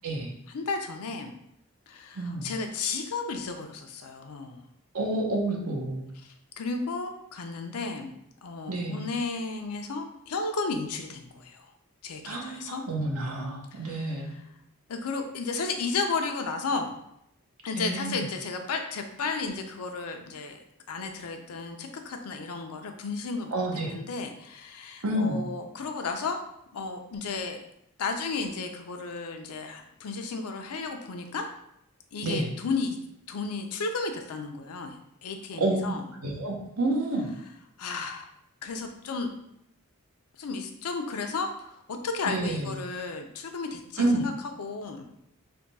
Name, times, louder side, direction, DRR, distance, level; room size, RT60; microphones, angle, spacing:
voice 1, 0.5-1.3 1.9-4.6 6.2-8.1 8.4-11.7 12.0-12.8 13.7-14.4 14.9-16.9 17.6-20.6 20.9-26.4 26.7-27.6 28.0-31.5 32.1-33.0 33.3-36.0 37.8-38.3 38.6-39.3 40.4-45.1, left 4 dB, 85° left, 5 dB, 0.5 m, -33 dB
voice 2, 2.2-2.5 4.9-6.1 8.7-9.1 12.2-14.4 17.8-18.2 23.5-23.9 25.0-25.4 32.2-32.5 35.6-35.9 36.2-37.3 42.3-42.8 44.0-44.2, right 2 dB, 80° right, 1 dB, 0.8 m, -29 dB
3.4 x 2.2 x 4.0 m, 0.79 s
head